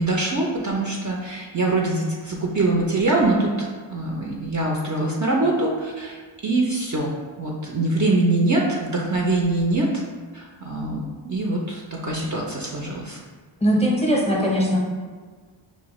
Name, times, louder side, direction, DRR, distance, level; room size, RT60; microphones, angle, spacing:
voice 1, 0.0-7.1 7.4-10.0 10.3-13.2, right 2 dB, 40° right, -2 dB, 0.4 m, -23 dB
voice 2, 13.6-14.8, equal, 15° left, -3 dB, 0.6 m, -20 dB
4.8 x 2.1 x 2.9 m, 1.5 s
wide cardioid pair, 100°, 48 cm